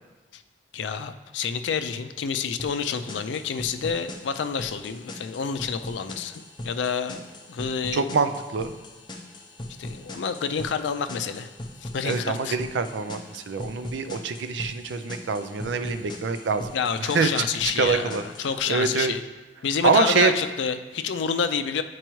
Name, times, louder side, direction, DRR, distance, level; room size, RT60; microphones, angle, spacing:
voice 1, 0.7-7.2 7.5-8.2 9.8-11.5 11.8-12.6 16.7-19.2 19.6-21.8, left 6 dB, 90° left, 9 dB, 0.4 m, -28 dB
sound 1, 2.6-18.6, left 1 dB, 25° left, 0.6 m, -40 dB
voice 2, 7.9-8.7 12.0-16.7 17.0-17.4 17.8-18.2 18.7-19.1 19.8-20.3, right 4 dB, 85° right, 9 dB, 0.4 m, -25 dB
8.9 x 4.6 x 3.0 m, 1.2 s
head